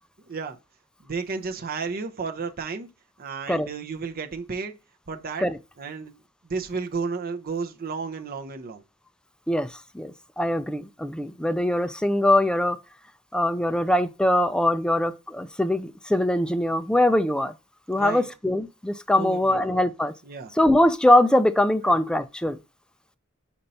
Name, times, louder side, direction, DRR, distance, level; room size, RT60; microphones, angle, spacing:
voice 1, 0.2-0.6 1.0-2.9 3.2-4.7 5.1-5.4 5.8-6.2 6.4-8.8 17.9-18.3 19.2-19.7 20.2-20.5 21.8-22.0, right 4 dB, 45° right, 0.6 m, -32 dB
voice 2, 9.9-12.8 13.3-17.5 17.9-20.1 20.6-22.6, left 1 dB, 5° left, 0.3 m, -22 dB
5.3 x 4.4 x 4.1 m
head